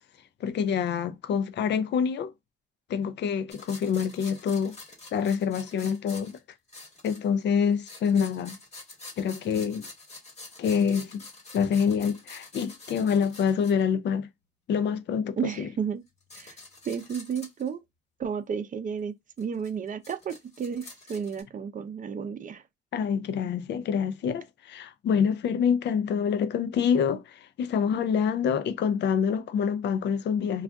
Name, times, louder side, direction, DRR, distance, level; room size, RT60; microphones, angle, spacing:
voice 1, 0.4-2.3 2.9-4.7 5.1-6.4 7.0-8.6 9.2-9.9 10.6-11.2 11.5-14.3 14.7-15.7 22.9-30.6, left 7 dB, 60° left, 0.5 m, -26 dB
sound 1, 3.5-7.4 7.7-13.8 15.5-15.6 16.1-17.7 19.4-21.4, left 2 dB, 35° left, 1.1 m, -47 dB
voice 2, 15.4-16.0 16.3-16.5 16.9-17.8 18.2-22.6, right 7 dB, 40° right, 0.6 m, -32 dB
2.5 x 2.4 x 3.4 m
cardioid pair, 90°, 20 cm